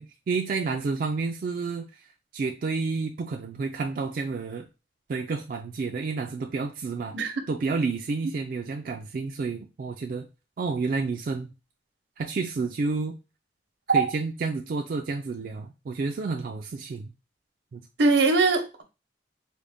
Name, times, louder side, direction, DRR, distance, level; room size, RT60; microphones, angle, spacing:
voice 1, 0.0-2.1 2.3-4.7 5.1-10.3 10.6-11.5 12.2-13.2 13.9-17.1 17.7-17.8, right 4 dB, 50° right, 0.3 m, -30 dB
voice 2, 18.0-18.8, right 3 dB, 80° right, 0.8 m, -21 dB
3.7 x 2.1 x 3.4 m
head